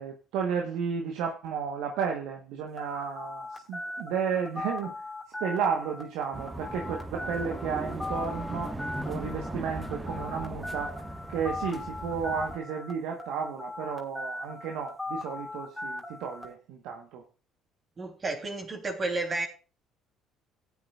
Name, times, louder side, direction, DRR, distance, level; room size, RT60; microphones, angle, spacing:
voice 1, 0.0-4.9 5.4-8.7 9.0-11.0 11.3-17.2, right 6 dB, 70° right, 2 dB, 1.2 m, -33 dB
sound 1, 2.8-12.9 13.2-16.4, left 2 dB, 10° left, 2.4 m, -38 dB
sound 2, 6.3-12.6, right 1 dB, 20° right, 1.4 m, -38 dB
voice 2, 18.0-19.5, right 2 dB, 35° right, 3 dB, 3.2 m, -31 dB
18.0 x 8.4 x 2.4 m, 0.33 s
hypercardioid pair, 55°, 0 cm